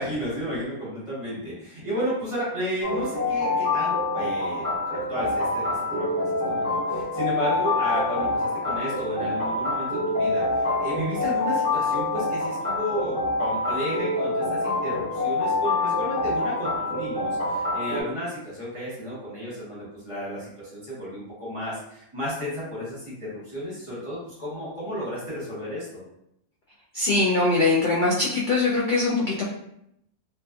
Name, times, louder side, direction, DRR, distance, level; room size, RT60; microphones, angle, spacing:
voice 1, 0.0-26.0, equal, 30° right, -8 dB, 0.9 m, -33 dB
sound 1, 2.8-18.0, left 2 dB, 15° left, 1.0 m, -26 dB
voice 2, 26.9-29.4, left 3 dB, 70° left, -5 dB, 0.4 m, -22 dB
2.5 x 2.4 x 2.3 m, 0.76 s
omnidirectional pair, 1.4 m